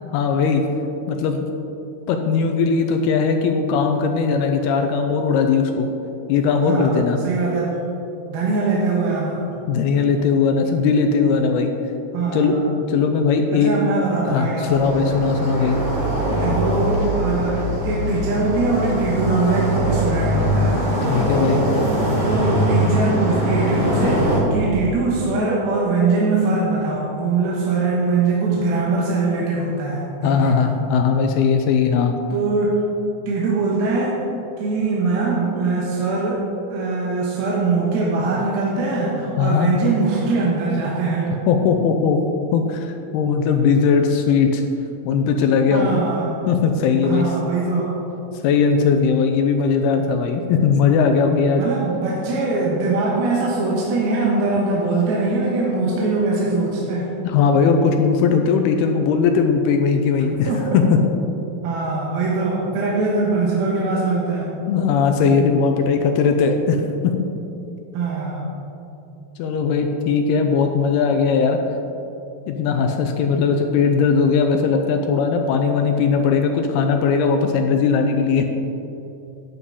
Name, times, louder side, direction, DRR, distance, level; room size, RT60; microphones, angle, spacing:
voice 1, 0.1-0.6 1.1-1.4 2.1-5.9 6.3-7.2 9.7-11.7 12.3-12.6 12.9-13.7 14.3-15.8 21.1-21.6 30.2-32.1 39.4-39.7 41.5-44.6 45.1-45.9 46.5-47.2 48.4-51.6 57.2-61.0 64.7-67.1 69.4-71.6 72.5-78.5, left 5 dB, 85° left, 4 dB, 2.5 m, -19 dB
voice 2, 6.6-7.8 8.3-9.5 12.1-12.7 13.5-15.0 16.3-20.8 22.2-30.7 32.3-32.9 33.3-34.2 34.6-36.4 36.7-41.4 45.7-46.4 47.0-48.0 51.6-57.2 60.5-60.8 61.6-64.5 67.9-68.5, right 3 dB, 75° right, -4 dB, 3.0 m, -22 dB
sound 1, 14.7-24.4, equal, 20° right, 1.2 m, -21 dB
12.0 x 8.6 x 3.8 m, 2.9 s
omnidirectional pair, 4.6 m